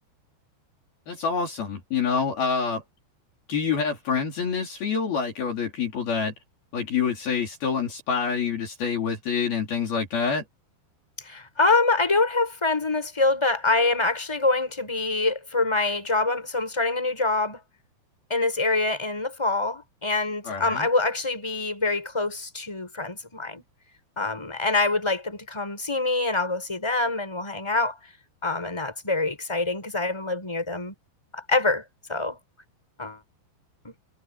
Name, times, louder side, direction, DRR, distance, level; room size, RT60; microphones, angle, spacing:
voice 1, 1.1-2.8 3.5-6.3 6.7-10.4 20.4-20.9, left 6 dB, 55° left, 5.4 m, -27 dB
voice 2, 11.2-17.6 18.3-23.6 24.2-28.0 28.4-30.9 31.3-31.8 32.1-32.4 33.0-33.2 33.8-33.9, left 3 dB, 5° left, 6.1 m, -25 dB
omnidirectional pair, 5.3 m